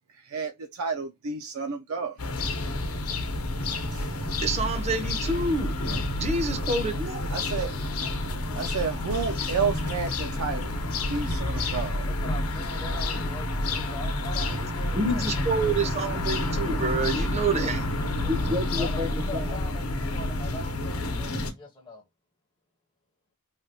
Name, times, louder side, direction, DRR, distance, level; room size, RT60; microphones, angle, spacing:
voice 1, 0.3-2.2 3.9-4.0 7.3-7.7 8.5-10.8 11.1-12.1, right 5 dB, 75° right, 0.4 m, -31 dB
sound 1, 2.2-21.5, left 2 dB, 85° left, 0.8 m, -29 dB
voice 2, 4.4-5.7 6.2-7.3 14.9-17.8 18.3-19.5, right 2 dB, 30° right, 0.6 m, -28 dB
voice 3, 12.0-16.5 18.2-22.0, left 2 dB, 20° left, 0.5 m, -42 dB
3.3 x 2.3 x 2.7 m
head